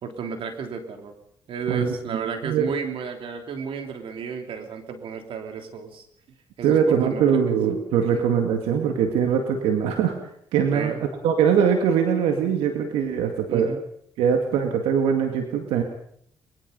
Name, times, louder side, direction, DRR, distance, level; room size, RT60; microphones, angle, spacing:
voice 1, 0.0-1.1 1.5-6.1 6.6-7.6 8.1-8.2 10.7-11.0 13.5-13.8, right 6 dB, 70° right, 5 dB, 3.5 m, -33 dB
voice 2, 2.2-2.7 6.6-10.1 10.5-13.7 14.2-15.8, right 7 dB, 90° right, 5 dB, 2.1 m, -22 dB
23.0 x 21.5 x 5.5 m, 0.69 s
supercardioid pair, 65°, 9 cm